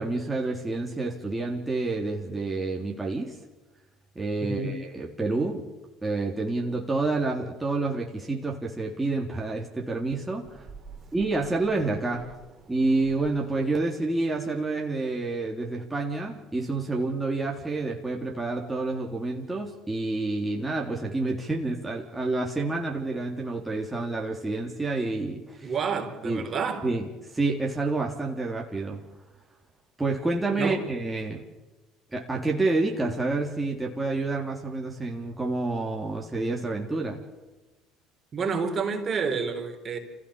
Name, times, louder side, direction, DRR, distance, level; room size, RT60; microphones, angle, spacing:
voice 1, 0.0-3.4 4.2-5.7 6.0-10.7 11.1-12.3 12.7-25.7 26.2-26.5 26.8-29.0 30.0-31.4 32.1-37.2, right 3 dB, 15° right, -1 dB, 3.6 m, -28 dB
voice 2, 4.4-4.7 25.6-26.8 30.5-30.8 38.3-40.0, right 5 dB, 40° right, 4 dB, 4.3 m, -29 dB
28.0 x 16.0 x 7.2 m, 1.2 s
supercardioid pair, 80°, 0 cm